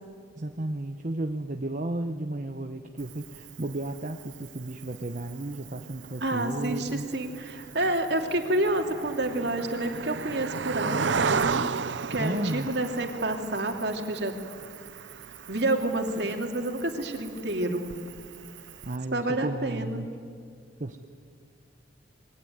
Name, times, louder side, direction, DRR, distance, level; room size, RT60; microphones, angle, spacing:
voice 1, 0.4-7.1 12.2-12.7 18.8-20.1 20.8-21.0, right 2 dB, 45° right, 5 dB, 1.0 m, -33 dB
Cricket, 3.0-19.0, right 5 dB, 85° right, 0.7 m, -36 dB
voice 2, 6.2-11.7 12.0-14.4 15.5-17.9 19.1-20.0, right 1 dB, 65° right, 4 dB, 3.0 m, -29 dB
27.5 x 22.0 x 9.5 m, 2.2 s
head